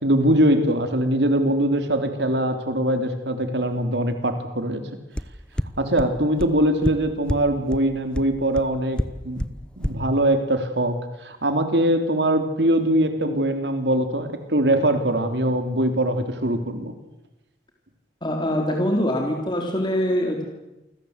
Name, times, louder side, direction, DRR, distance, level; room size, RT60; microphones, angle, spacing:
voice 1, 0.0-4.8 5.8-9.5 9.8-16.9, right 1 dB, 80° right, 7 dB, 3.4 m, -22 dB
sound 1, 5.2-5.3 5.6-5.7 6.0-6.1 6.4-6.5 6.8-6.9 7.3-7.4 7.7-7.8 8.2-8.3 8.6-8.7 9.0-9.1 9.4-9.5 9.8-9.9, equal, 5° left, 1.0 m, -24 dB
voice 2, 18.2-20.5, equal, 25° left, 2 dB, 3.8 m, -23 dB
28.5 x 25.0 x 8.2 m, 0.96 s
head